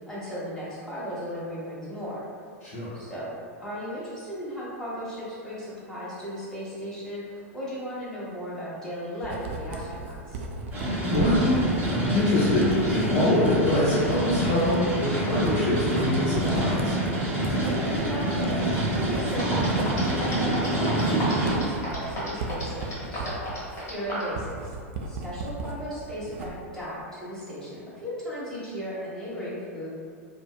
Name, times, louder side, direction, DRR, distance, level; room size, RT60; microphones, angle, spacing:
voice 1, 0.0-2.2 2.9-3.3 3.6-10.4 17.5-24.7 25.1-29.9, equal, 5° left, -10 dB, 1.1 m, -36 dB
voice 2, 2.6-2.9 11.1-16.9, left 1 dB, 55° left, -10 dB, 0.7 m, -24 dB
Writing, 9.2-25.8 26.1-26.8, right 3 dB, 55° right, 0.3 m, -36 dB
sound 1, 10.7-21.5, right 1 dB, 20° right, 0.7 m, -27 dB
sound 2, 19.4-24.3, left 1 dB, 35° left, 1.0 m, -33 dB
2.8 x 2.1 x 2.2 m, 2.1 s
figure-of-eight pair, 90°, 8 cm